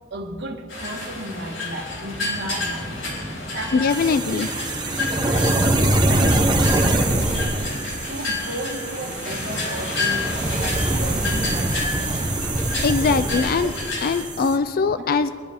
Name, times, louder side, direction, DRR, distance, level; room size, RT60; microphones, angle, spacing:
voice 1, 0.1-2.9 3.5-4.4 5.2-5.6 6.0-7.7 8.1-12.3 13.1-14.0 14.9-15.1, right 1 dB, 60° right, 0 dB, 1.5 m, -34 dB
sound 1, 0.7-14.2, left 2 dB, 90° left, 4.4 m, -30 dB
voice 2, 3.7-4.5 12.8-13.7 14.0-15.3, left 4 dB, 50° left, 12 dB, 0.4 m, -21 dB
sound 2, 3.9-14.6, right 1 dB, 20° right, 1.0 m, -24 dB
23.0 x 12.0 x 3.5 m, 2.3 s
head